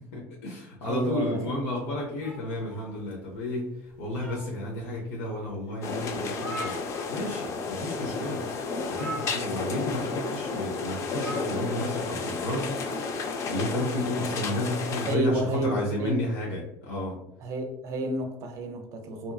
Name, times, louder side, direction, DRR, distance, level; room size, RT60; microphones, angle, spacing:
voice 1, 0.1-3.7 4.0-6.8 7.1-8.4 8.9-13.1 13.5-17.2, left 1 dB, 85° left, 0.7 m, -32 dB
voice 2, 0.8-1.4 15.0-16.3 17.4-19.3, right 2 dB, 45° right, 0.5 m, -30 dB
sound 1, 2.2-3.4 3.9-4.8 5.4-5.5 5.8-5.9 6.1-7.5 7.7-8.0 8.9-9.9 11.1-12.0, right 1 dB, 15° left, 0.8 m, -40 dB
sound 2, 5.8-15.2, left 4 dB, 40° left, 0.4 m, -32 dB
2.8 x 2.5 x 2.3 m
cardioid pair, 125°, 7 cm